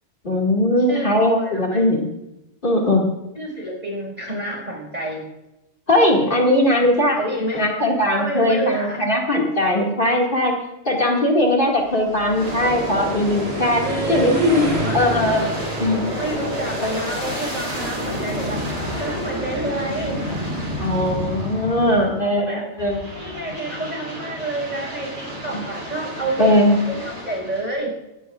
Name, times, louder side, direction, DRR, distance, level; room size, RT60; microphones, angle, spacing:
voice 1, 0.2-2.1 2.6-3.1 5.9-7.2 7.5-10.5 10.8-15.5 15.8-16.0 20.8-23.0 25.5-25.6 26.4-26.8, left 1 dB, 45° left, -2 dB, 2.6 m, -19 dB
voice 2, 0.9-1.8 3.3-5.3 7.2-7.6 8.2-9.0 13.8-15.0 16.2-20.2 22.2-22.7 23.1-27.9, right 1 dB, 35° right, 0 dB, 6.0 m, -29 dB
sound 1, 11.9-18.1, right 1 dB, 60° right, 2.6 m, -32 dB
Aircraft, 12.3-22.3 22.8-27.7, equal, 75° right, 7.4 m, -29 dB
22.0 x 17.0 x 2.6 m, 0.92 s
omnidirectional pair, 1.2 m